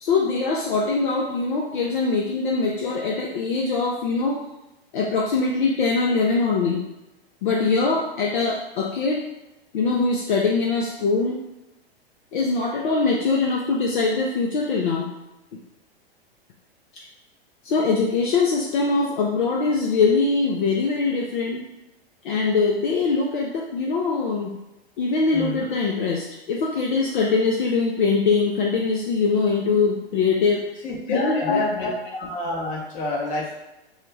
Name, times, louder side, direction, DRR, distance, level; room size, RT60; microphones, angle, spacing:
voice 1, 0.0-4.4 4.9-6.8 7.4-9.2 9.7-11.4 12.3-15.1 17.6-21.7 22.2-24.6 25.0-30.7 31.1-31.9, left 4 dB, 55° left, -2 dB, 0.5 m, -22 dB
voice 2, 30.8-31.9 32.2-33.5, left 2 dB, 25° left, -3 dB, 0.7 m, -28 dB
2.3 x 2.1 x 3.2 m, 0.97 s
figure-of-eight pair, 100°, 31 cm